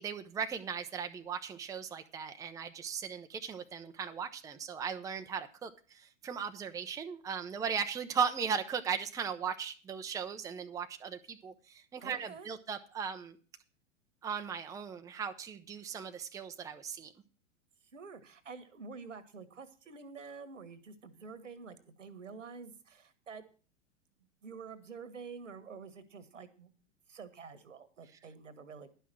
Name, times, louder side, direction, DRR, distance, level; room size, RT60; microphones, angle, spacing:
voice 1, 0.0-13.4 14.2-17.1, right 6 dB, 10° right, 7 dB, 0.6 m, -37 dB
voice 2, 12.0-12.5 17.9-23.4 24.4-26.7 27.1-28.9, right 5 dB, 80° right, 11 dB, 1.5 m, -48 dB
11.0 x 5.8 x 7.6 m, 0.38 s
figure-of-eight pair, 105°, 37 cm